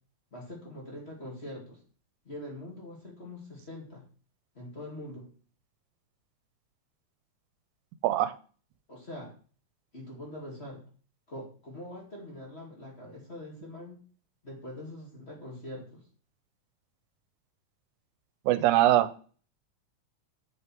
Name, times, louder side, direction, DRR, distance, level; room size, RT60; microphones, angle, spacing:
voice 1, 0.3-1.8 2.2-4.0 4.5-5.3 8.9-9.3 9.9-10.8 11.3-14.0 14.4-16.0, left 1 dB, 25° left, -2 dB, 2.2 m, -43 dB
voice 2, 18.5-19.2, right 13 dB, 80° right, 13 dB, 2.1 m, -22 dB
8.1 x 6.4 x 4.5 m, 0.41 s
omnidirectional pair, 3.5 m